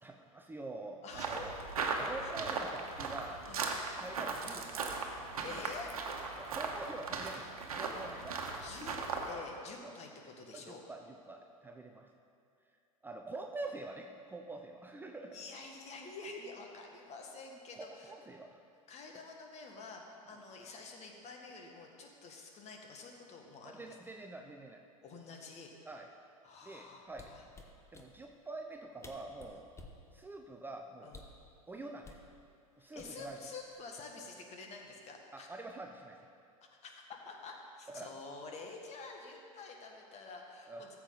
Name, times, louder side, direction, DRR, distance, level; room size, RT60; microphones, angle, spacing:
voice 1, 0.0-1.5 2.0-3.4 3.9-5.0 6.4-8.9 9.8-9.9 10.5-12.1 13.0-15.4 17.7-18.6 23.6-24.8 25.9-26.1 26.6-27.3 27.9-29.7 30.1-31.1 31.7-32.3 32.8-33.4 35.3-36.3 37.9-38.1 40.7-40.8, right 2 dB, 10° right, 3 dB, 0.6 m, -46 dB
voice 2, 1.0-1.5 2.2-2.3 3.5-3.7 5.4-5.9 8.6-9.0 9.3-10.8 15.3-18.1 18.9-24.0 25.0-25.7 26.4-27.4 29.4-29.5 31.0-31.2 32.8-35.5 36.8-41.0, left 4 dB, 35° left, 2 dB, 1.6 m, -48 dB
sound 1, 1.1-9.3, right 4 dB, 80° right, 1.2 m, -38 dB
sound 2, 27.1-28.1 28.8-28.9 29.0-30.0 31.1-31.4 32.0-32.3 33.0-33.4 33.8-34.1, left 3 dB, 15° left, 1.1 m, -52 dB
14.0 x 7.4 x 3.9 m, 2.4 s
hypercardioid pair, 90°, 19 cm